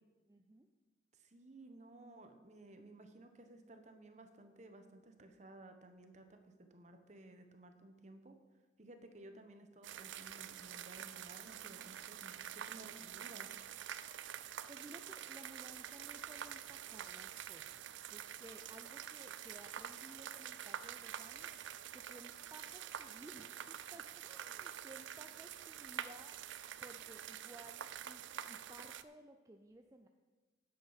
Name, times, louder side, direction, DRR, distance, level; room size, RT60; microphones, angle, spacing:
voice 1, 0.3-0.7 14.7-26.4 26.8-30.1, right 1 dB, 15° right, 4 dB, 0.4 m, -57 dB
voice 2, 1.1-6.4 6.7-8.4 8.8-13.5, right 2 dB, 35° right, 7 dB, 1.0 m, -56 dB
sound 1, 9.8-29.0, right 10 dB, 75° right, 0.4 m, -47 dB
9.9 x 8.0 x 5.8 m, 1.3 s
head